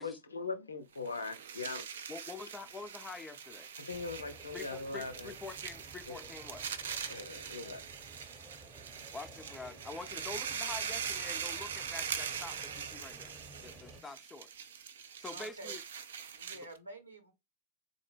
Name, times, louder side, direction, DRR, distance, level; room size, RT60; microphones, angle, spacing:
voice 1, 0.0-1.8 3.8-5.3 6.1-6.2 7.1-7.8, left 4 dB, 75° left, 0.5 m, -40 dB
sound 1, 1.0-16.8, right 7 dB, 65° right, 0.4 m, -42 dB
voice 2, 2.1-3.7 4.5-6.7 9.1-13.4 13.6-14.5 15.0-15.8, left 3 dB, 15° left, 0.4 m, -46 dB
sound 2, 3.9-14.0, right 2 dB, 10° right, 0.8 m, -55 dB
voice 3, 15.3-15.8 16.3-17.3, right 2 dB, 80° right, 0.8 m, -49 dB
3.8 x 2.1 x 3.2 m
figure-of-eight pair, 90°, 0 cm